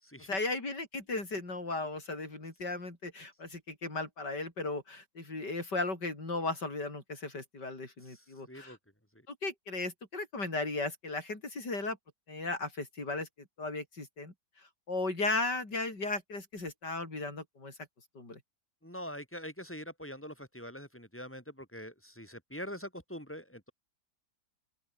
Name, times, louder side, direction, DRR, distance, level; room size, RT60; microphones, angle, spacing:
voice 1, 0.3-8.8 9.3-12.0 12.3-13.3 13.6-14.3 14.9-17.7 18.1-18.4, left 2 dB, 75° left, 6.4 m, -36 dB
voice 2, 8.1-8.8 18.8-23.7, equal, 5° left, 6.1 m, -44 dB
open air
omnidirectional pair, 1.8 m